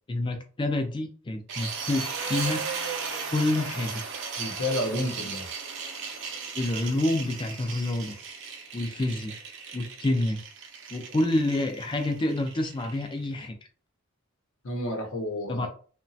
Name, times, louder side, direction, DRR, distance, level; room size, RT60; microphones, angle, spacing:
voice 1, 0.1-2.6 3.3-4.0 6.6-8.2 8.7-9.4 9.7-10.4 10.9-13.5 15.5-15.7, left 1 dB, 25° left, 6 dB, 0.4 m, -28 dB
sound 1, 1.5-13.4, right 5 dB, 55° right, 0.5 m, -36 dB
voice 2, 4.4-5.5 14.6-15.7, left 1 dB, 70° left, 3 dB, 0.8 m, -30 dB
2.9 x 2.2 x 2.7 m, 0.41 s
head